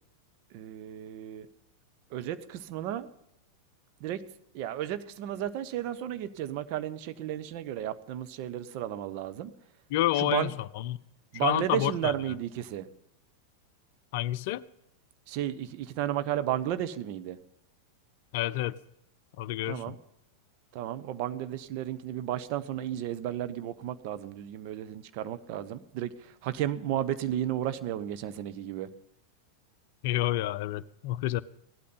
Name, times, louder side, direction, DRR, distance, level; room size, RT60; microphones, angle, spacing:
voice 1, 0.5-1.5 2.1-3.1 4.0-4.2 4.5-9.5 10.2-10.5 11.3-12.9 15.3-17.4 19.7-20.0 20.7-28.9, right 11 dB, 45° right, 11 dB, 1.0 m, -33 dB
voice 2, 9.9-11.0 11.3-12.1 14.1-14.6 18.3-18.8 19.4-20.0 30.0-31.4, left 14 dB, 50° left, 17 dB, 0.5 m, -29 dB
17.0 x 12.0 x 5.6 m, 0.79 s
figure-of-eight pair, 90°, 0 cm